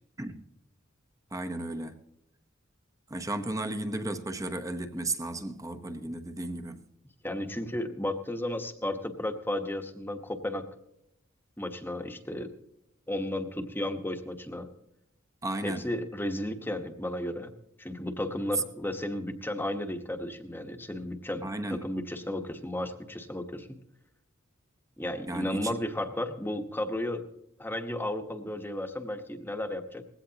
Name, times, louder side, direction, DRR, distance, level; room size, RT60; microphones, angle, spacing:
voice 1, 1.3-2.0 3.1-6.8 15.4-15.9 21.4-21.9 25.3-25.8, right 2 dB, 15° right, 1.0 m, -34 dB
voice 2, 7.2-10.6 11.6-12.5 13.1-14.7 15.6-17.5 17.8-23.7 25.0-27.2 27.6-30.0, left 1 dB, 10° left, 1.2 m, -34 dB
19.5 x 16.5 x 2.9 m
head